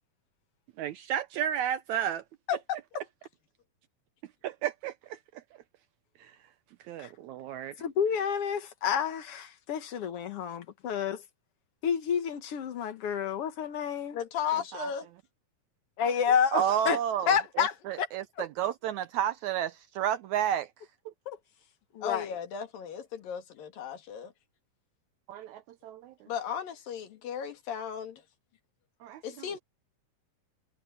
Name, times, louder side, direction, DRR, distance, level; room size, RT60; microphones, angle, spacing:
voice 1, 0.8-2.2 4.4-5.2 6.9-7.7 14.7-14.9 16.5-20.7 25.3-26.1 29.0-29.2, right 10 dB, 75° right, 1.8 m, -31 dB
voice 2, 2.5-3.1 14.1-15.1 16.3-16.4 22.0-24.3 26.3-28.2 29.2-29.6, left 8 dB, 85° left, 3.8 m, -35 dB
voice 3, 7.8-11.2 11.8-14.2 16.0-17.0 17.3-18.1 21.3-21.4 21.9-22.3, left 7 dB, 55° left, 1.7 m, -29 dB
omnidirectional pair, 3.9 m